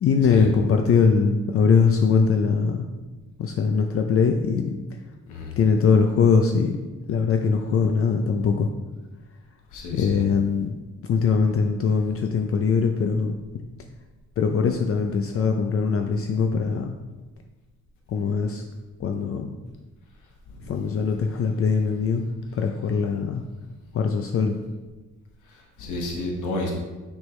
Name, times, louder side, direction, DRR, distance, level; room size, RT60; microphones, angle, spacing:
voice 1, 0.0-2.9 3.4-5.0 5.6-6.8 7.1-8.7 9.9-10.8 11.0-13.6 14.4-16.9 18.1-18.6 19.0-19.5 20.7-22.2 22.5-23.4 23.9-24.6, left 5 dB, 50° left, 5 dB, 0.5 m, -22 dB
voice 2, 9.7-10.2 20.5-20.7 25.5-26.7, left 2 dB, 80° left, -1 dB, 1.2 m, -31 dB
6.2 x 5.4 x 3.2 m, 1.2 s
cardioid pair, 90°, 30 cm